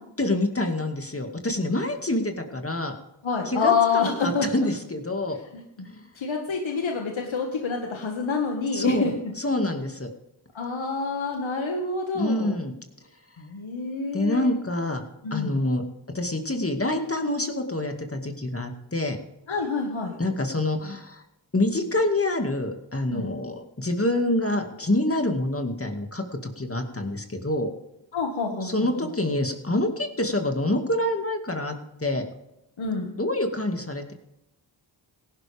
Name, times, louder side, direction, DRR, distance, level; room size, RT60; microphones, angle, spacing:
voice 1, 0.2-2.9 3.5-5.4 5.9-6.0 8.7-10.1 12.1-12.7 14.1-15.8 16.1-19.2 20.2-21.2 21.5-27.7 28.6-32.2 33.2-34.1, left 1 dB, 30° left, 4 dB, 2.2 m, -26 dB
voice 2, 3.2-4.5 5.5-5.6 6.2-9.3 10.5-12.6 13.4-14.5 15.2-15.6 19.5-20.2 23.1-23.3 28.1-28.9 32.8-33.1, left 5 dB, 75° left, 1 dB, 1.9 m, -27 dB
17.5 x 11.5 x 3.6 m, 0.86 s
cardioid pair, 50°, 48 cm